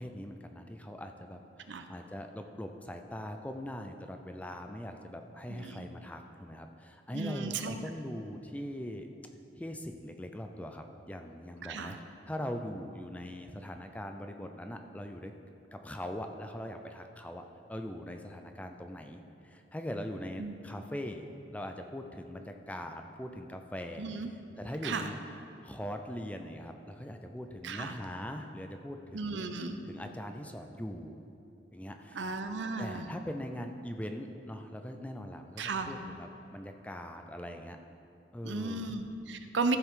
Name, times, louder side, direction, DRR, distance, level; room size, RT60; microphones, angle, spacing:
voice 1, 0.0-9.1 9.6-12.0 12.3-15.3 15.7-17.4 17.7-21.2 21.5-24.1 24.6-25.2 25.6-29.4 29.8-31.2 31.7-32.2 32.8-37.8 38.3-38.9, equal, 10° left, 5 dB, 0.4 m, -41 dB
voice 2, 5.5-5.9 7.1-7.8 11.6-12.0 20.4-20.5 24.0-24.3 24.8-25.1 27.6-28.0 29.1-29.8 32.1-33.1 35.6-35.9 38.4-39.8, right 4 dB, 90° right, 7 dB, 0.7 m, -35 dB
14.0 x 7.2 x 3.7 m, 2.9 s
head